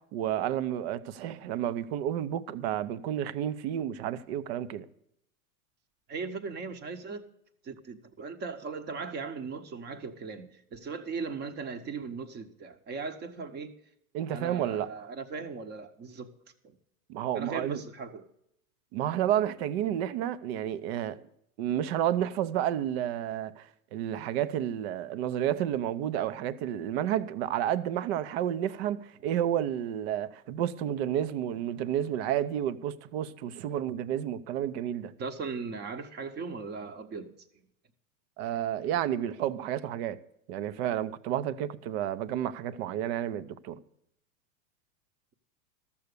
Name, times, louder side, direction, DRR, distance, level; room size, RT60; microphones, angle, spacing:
voice 1, 0.1-4.9 14.1-14.9 17.1-17.8 18.9-21.2 21.6-35.1 38.4-40.2 40.5-43.8, right 11 dB, 50° right, 0.7 m, -31 dB
voice 2, 6.1-7.3 7.6-13.7 14.3-16.3 16.6-16.8 17.3-18.3 35.2-37.3, right 4 dB, 25° right, 1.0 m, -38 dB
13.0 x 7.0 x 6.7 m
supercardioid pair, 135°, 42 cm